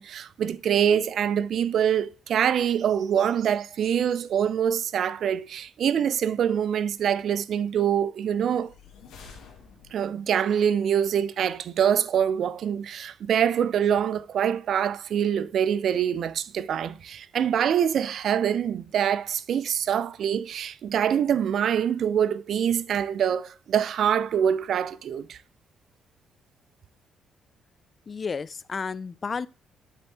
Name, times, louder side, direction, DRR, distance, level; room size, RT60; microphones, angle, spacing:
voice 1, 0.0-8.7 9.9-25.4, right 8 dB, 65° right, 0.4 m, -25 dB
sound 1, 8.5-10.3, left 5 dB, 85° left, 2.3 m, -49 dB
voice 2, 28.1-29.5, left 5 dB, 40° left, 0.3 m, -32 dB
9.7 x 4.4 x 3.4 m
cardioid pair, 90°, 0 cm